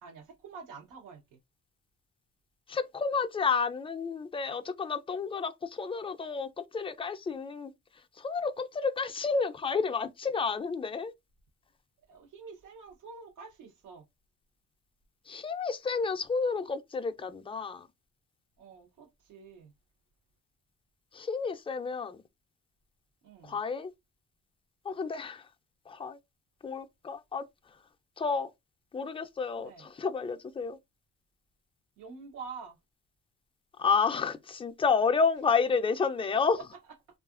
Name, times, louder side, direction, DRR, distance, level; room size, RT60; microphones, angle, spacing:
voice 1, 0.0-1.4 12.0-14.0 18.6-19.7 23.2-23.6 29.6-29.9 32.0-32.8 36.6-36.7, right 5 dB, 85° right, 0.8 m, -47 dB
voice 2, 2.7-7.7 8.2-11.1 15.3-17.9 21.1-22.2 23.4-23.9 24.9-25.5 25.9-26.2 26.6-27.4 28.2-28.5 28.9-30.8 33.8-36.6, left 5 dB, 20° left, 0.3 m, -30 dB
2.7 x 2.4 x 2.4 m
cardioid pair, 90°, 30 cm